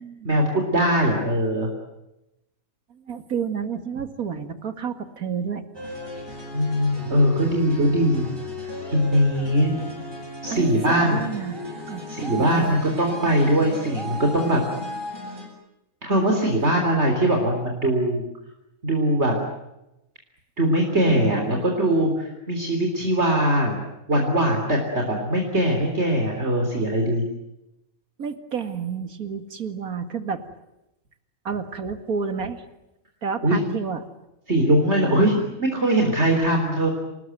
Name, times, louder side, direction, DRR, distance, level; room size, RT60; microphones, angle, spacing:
voice 1, 0.2-1.7 6.5-8.3 8.9-9.7 10.4-11.3 12.1-14.6 16.0-18.2 18.8-19.3 20.6-23.8 24.1-27.2 33.4-33.7 34.5-36.9, right 1 dB, 50° right, 2 dB, 4.0 m, -21 dB
voice 2, 2.9-5.6 10.5-11.6 11.9-12.0 12.4-12.8 21.1-21.6 28.2-30.4 31.4-32.6 33.2-34.0, right 6 dB, 80° right, 9 dB, 2.5 m, -30 dB
sound 1, 5.7-15.5, left 1 dB, 15° right, 8.1 m, -35 dB
28.5 x 19.5 x 9.3 m, 0.91 s
omnidirectional pair, 1.5 m